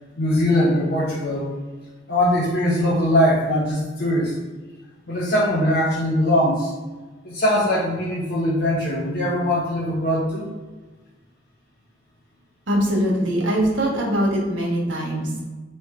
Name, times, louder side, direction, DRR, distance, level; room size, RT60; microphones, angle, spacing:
voice 1, 0.2-1.5 2.1-4.3 5.1-6.7 7.2-10.5, left 1 dB, 50° left, -6 dB, 0.7 m, -21 dB
voice 2, 12.7-15.4, equal, 75° right, -4 dB, 1.3 m, -22 dB
3.6 x 3.1 x 4.2 m, 1.2 s
head